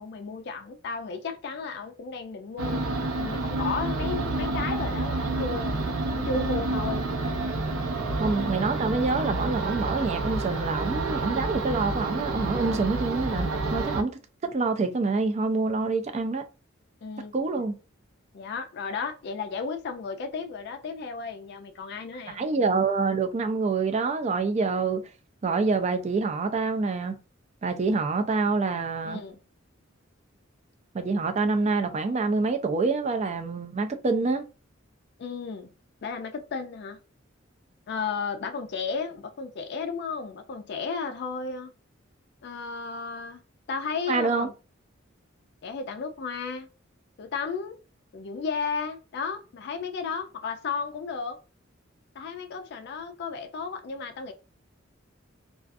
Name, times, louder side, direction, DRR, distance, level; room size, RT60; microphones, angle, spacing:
voice 1, 0.0-5.8 6.1-7.1 17.0-17.3 18.3-22.4 29.0-29.4 35.2-35.7 36.0-37.0 37.9-41.7 42.4-43.4 43.7-44.5 45.6-46.7 47.2-47.8 48.1-51.4 52.2-54.3, left 5 dB, 55° left, 0.4 m, -34 dB
sound 1, 2.6-14.0, right 2 dB, 90° right, 0.6 m, -29 dB
voice 2, 8.2-16.4 17.3-17.8 22.3-25.1 25.4-27.2 27.6-29.2 30.9-34.4 44.1-44.5, right 4 dB, 35° right, 0.4 m, -26 dB
2.4 x 2.4 x 2.5 m
head